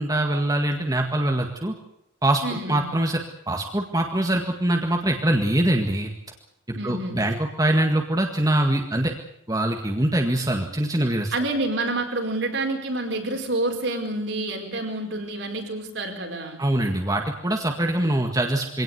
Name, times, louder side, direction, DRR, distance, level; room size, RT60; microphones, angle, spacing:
voice 1, 0.0-1.7 2.2-3.2 3.5-6.1 6.7-9.1 9.5-11.3 16.6-18.8, right 1 dB, 20° right, 2 dB, 1.9 m, -23 dB
voice 2, 2.4-2.9 6.7-7.2 11.3-16.6, right 2 dB, 65° right, 2 dB, 5.0 m, -28 dB
24.0 x 17.5 x 8.2 m, 0.77 s
head